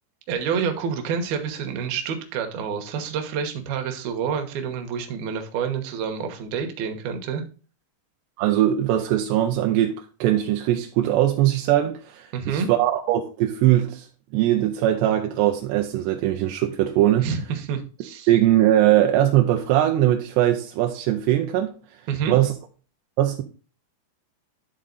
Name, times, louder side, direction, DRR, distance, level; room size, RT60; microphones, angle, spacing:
voice 1, 0.3-7.4 12.3-12.7 17.2-18.3 22.1-22.3, right 6 dB, 70° right, 2.6 m, -28 dB
voice 2, 8.4-14.1 14.3-17.3 18.3-21.7 22.3-22.5 23.2-23.4, right 13 dB, 85° right, 2.5 m, -20 dB
11.5 x 3.8 x 3.9 m
omnidirectional pair, 5.3 m